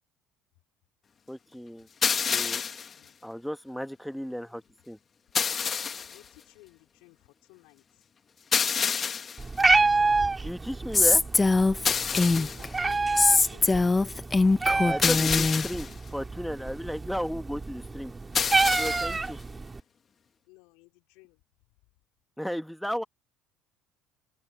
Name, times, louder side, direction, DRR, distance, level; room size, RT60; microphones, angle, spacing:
voice 1, 1.3-1.9 2.3-2.6 3.2-5.0 10.4-11.2 14.8-18.1 18.8-19.4 22.4-23.0, equal, ahead, 1.7 m, -34 dB
sound 1, 2.0-2.9 5.4-6.2 8.5-9.4 11.9-12.7 15.0-15.9 18.4-19.2, left 6 dB, 35° left, 1.5 m, -28 dB
voice 2, 5.9-7.2 7.5-7.8 12.3-13.9 18.7-19.1 20.5-21.4, left 25 dB, 85° left, 4.9 m, -54 dB
Meow, 9.4-19.8, right 3 dB, 20° right, 2.9 m, -28 dB
Female speech woman speaking, 10.9-12.7 13.2-15.7, left 3 dB, 20° left, 1.2 m, -22 dB
open air
supercardioid pair, 95°, 0 cm